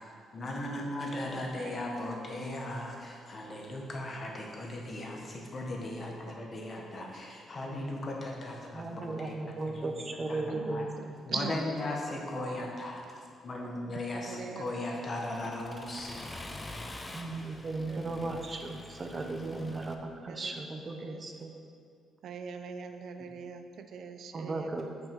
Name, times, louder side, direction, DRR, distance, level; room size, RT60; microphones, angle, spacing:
voice 1, 0.0-9.3 9.6-10.0 10.3-10.8 11.3-16.7 17.8-18.2 19.1-19.3, left 1 dB, 40° left, 0 dB, 1.2 m, -38 dB
voice 2, 1.2-1.8 6.4-6.6 6.9-7.1 8.5-8.9 11.0-11.5 12.5-12.7 14.1-14.7 17.3-17.5 17.9-18.3 19.4-19.8 20.3-20.7 21.0-21.2 22.2-24.7, right 6 dB, 65° right, 7 dB, 0.4 m, -45 dB
voice 3, 8.7-11.2 11.8-11.9 17.1-21.5 24.3-24.9, right 2 dB, 30° right, 4 dB, 0.7 m, -36 dB
Accelerating revving vroom, 14.7-19.9, left 2 dB, 20° left, 0.6 m, -46 dB
5.9 x 5.3 x 5.3 m, 2.3 s
cardioid pair, 90°, 0 cm